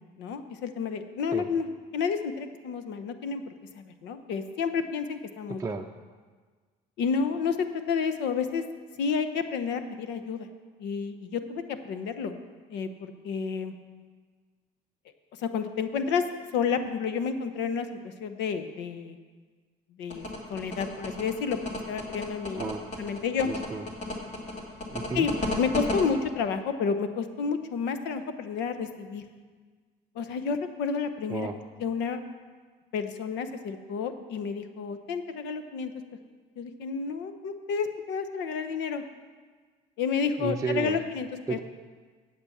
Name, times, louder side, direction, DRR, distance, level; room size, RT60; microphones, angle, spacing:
voice 1, 0.2-1.7 1.9-5.6 7.0-7.6 7.9-8.6 9.0-10.5 10.8-12.4 12.7-13.7 15.4-16.2 16.5-19.2 20.0-21.6 21.9-22.6 23.0-23.5 25.1-29.2 30.1-31.5 31.8-32.2 32.9-35.9 36.6-39.0 40.0-41.6, left 6 dB, 85° left, 9 dB, 0.9 m, -30 dB
sound 1, 20.1-26.0, left 1 dB, 40° left, 2.4 m, -33 dB
voice 2, 23.5-23.8 24.9-25.3 31.3-31.5 40.4-41.0 41.5-41.6, right 4 dB, 20° right, 2 dB, 0.5 m, -32 dB
8.6 x 8.2 x 7.3 m, 1.5 s
cardioid pair, 105°, 18 cm